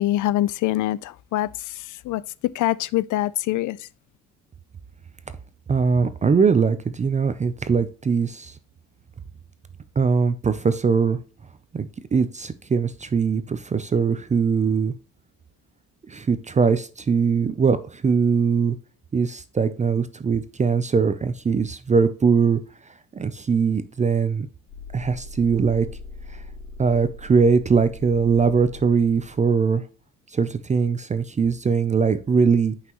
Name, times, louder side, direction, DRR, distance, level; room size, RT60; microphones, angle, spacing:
voice 1, 0.0-3.9, left 15 dB, 65° left, 0.5 m, -25 dB
voice 2, 5.7-8.5 10.0-11.2 11.7-14.9 16.1-18.8 19.1-22.6 23.1-24.5 24.9-25.9 26.3-26.4 26.8-29.8 30.3-32.7, right 5 dB, 20° right, 0.5 m, -21 dB
sound 1, 24.7-29.6, left 3 dB, 80° left, 3.3 m, -41 dB
8.5 x 5.7 x 3.0 m
cardioid pair, 130°, 33 cm